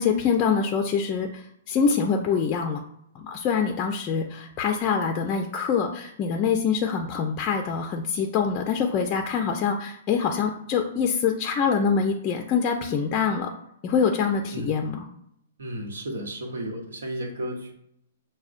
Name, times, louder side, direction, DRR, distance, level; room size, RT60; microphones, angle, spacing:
voice 1, 0.0-1.4 1.7-2.8 3.1-13.5 13.8-15.0, left 6 dB, 30° left, 3 dB, 0.4 m, -25 dB
voice 2, 15.6-17.7, right 1 dB, 90° right, 1 dB, 1.0 m, -33 dB
6.0 x 2.1 x 2.5 m, 0.73 s
hypercardioid pair, 135°, 0 cm